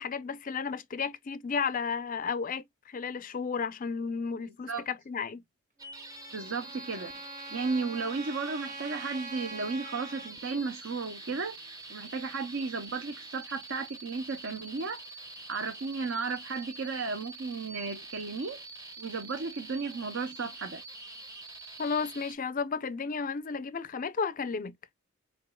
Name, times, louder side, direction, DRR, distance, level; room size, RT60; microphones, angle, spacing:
voice 1, 0.0-5.4 21.8-24.7, left 5 dB, 40° left, 0.4 m, -33 dB
sound 1, 5.8-22.3, right 2 dB, 15° right, 0.8 m, -46 dB
Trumpet, 5.8-10.3, right 3 dB, 35° right, 1.3 m, -45 dB
voice 2, 6.3-7.1 7.5-15.0 15.5-18.6 19.0-20.8, right 4 dB, 60° right, 0.7 m, -34 dB
5.2 x 3.9 x 2.2 m
head